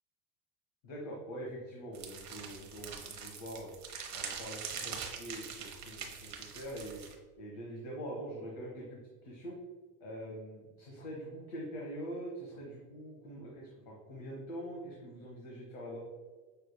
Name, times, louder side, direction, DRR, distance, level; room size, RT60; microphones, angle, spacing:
voice 1, 0.8-3.7 4.1-7.0 7.4-9.5 10.0-16.0, right 1 dB, 60° left, -2 dB, 1.2 m, -44 dB
sound 1, 1.9-7.1, right 6 dB, 35° right, 0.9 m, -43 dB
6.3 x 3.4 x 2.2 m, 1.4 s
hypercardioid pair, 75°, 47 cm